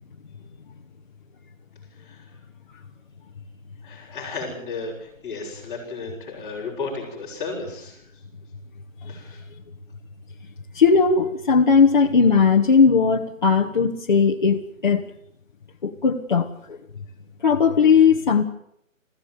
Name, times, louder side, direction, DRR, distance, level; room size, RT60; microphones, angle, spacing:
voice 1, 3.8-8.0 9.1-9.4, left 3 dB, 10° left, -6 dB, 6.6 m, -33 dB
voice 2, 10.7-15.0 15.8-16.8 17.4-18.4, left 5 dB, 35° left, 0 dB, 1.5 m, -18 dB
22.0 x 15.5 x 9.4 m, 0.74 s
hypercardioid pair, 170°, 40 cm